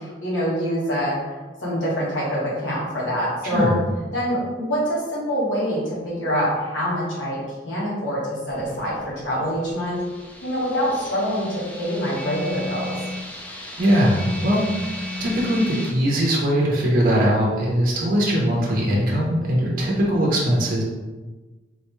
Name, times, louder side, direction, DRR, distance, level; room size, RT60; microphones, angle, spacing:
voice 1, 0.0-3.7 4.1-7.4 7.6-10.0 10.4-12.9, equal, 85° left, -7 dB, 1.4 m, -25 dB
sound 1, 8.5-15.9, left 1 dB, 5° left, 0.4 m, -34 dB
voice 2, 13.8-20.8, equal, 50° right, -3 dB, 0.7 m, -21 dB
3.7 x 2.2 x 3.0 m, 1.2 s
head